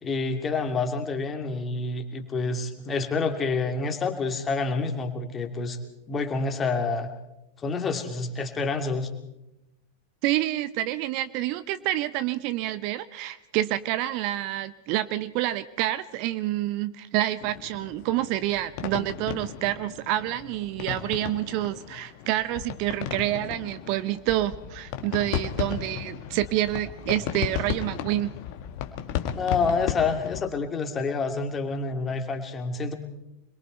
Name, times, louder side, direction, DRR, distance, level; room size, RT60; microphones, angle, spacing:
voice 1, 0.0-5.8 6.1-7.1 7.6-9.1 29.4-32.9, left 4 dB, 20° left, 5 dB, 2.6 m, -28 dB
voice 2, 10.2-28.3, right 14 dB, 45° right, 15 dB, 0.8 m, -28 dB
sound 1, 17.4-30.4, left 9 dB, 45° left, 1.7 m, -35 dB
26.5 x 22.0 x 4.5 m, 0.91 s
figure-of-eight pair, 90°, 0 cm